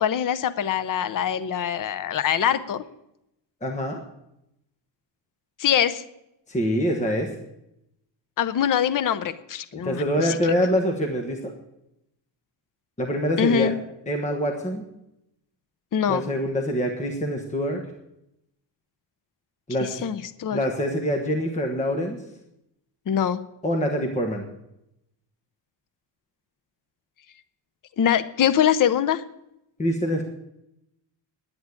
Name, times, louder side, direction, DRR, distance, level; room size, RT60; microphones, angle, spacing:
voice 1, 0.0-2.8 5.6-6.0 8.4-10.4 13.4-13.8 15.9-16.2 19.8-20.6 23.1-23.4 28.0-29.2, left 9 dB, 45° left, 13 dB, 0.7 m, -23 dB
voice 2, 3.6-4.0 6.5-7.3 9.7-11.5 13.0-13.7 14.1-14.9 16.1-17.8 19.7-20.0 20.5-22.2 23.6-24.5 29.8-30.2, equal, 15° left, 2 dB, 1.2 m, -25 dB
10.5 x 8.4 x 9.6 m, 0.84 s
wide cardioid pair, 175°, 46 cm